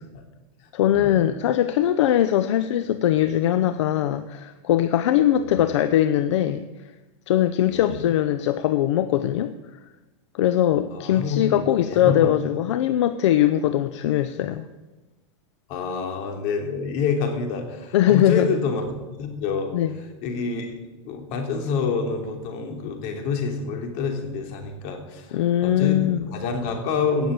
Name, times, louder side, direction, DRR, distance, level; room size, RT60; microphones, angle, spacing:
voice 1, 0.7-6.7 7.3-9.5 10.3-14.7 17.9-18.5 19.7-20.0 25.3-26.3, left 11 dB, 75° left, 11 dB, 0.7 m, -21 dB
voice 2, 7.7-8.0 10.9-11.6 11.9-12.3 15.7-18.8 19.2-19.7 20.2-20.8 21.0-26.0 26.3-27.3, left 5 dB, 55° left, 3 dB, 3.3 m, -27 dB
17.0 x 7.1 x 7.7 m, 1.1 s
supercardioid pair, 130°, 15 cm